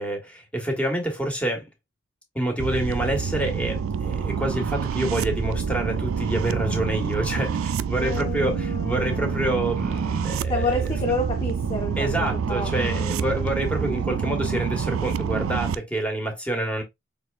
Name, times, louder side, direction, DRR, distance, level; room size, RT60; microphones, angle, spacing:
voice 1, 0.0-1.7 2.3-10.8 12.0-16.8, right 1 dB, 5° left, 1.4 m, -27 dB
sound 1, 2.6-15.8, right 6 dB, 85° right, 0.4 m, -27 dB
voice 2, 8.0-9.4 10.5-14.0, left 1 dB, 25° left, 0.5 m, -30 dB
6.1 x 3.4 x 2.4 m
head